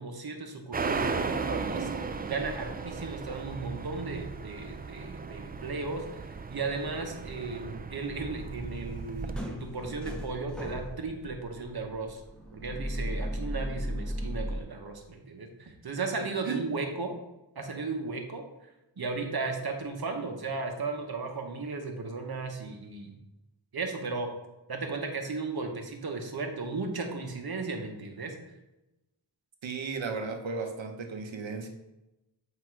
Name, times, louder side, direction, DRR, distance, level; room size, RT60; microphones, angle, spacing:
voice 1, 0.0-12.2 12.5-17.1 17.5-18.7 19.0-23.1 23.7-24.3 24.7-28.4, right 3 dB, 55° right, 4 dB, 1.1 m, -35 dB
sound 1, 0.7-9.4, right 4 dB, 20° right, 0.3 m, -36 dB
sound 2, 8.0-14.6, equal, ahead, 1.0 m, -37 dB
voice 2, 29.6-31.7, right 4 dB, 75° right, 4 dB, 1.0 m, -35 dB
7.7 x 2.9 x 4.7 m, 0.96 s
wide cardioid pair, 75°, 46 cm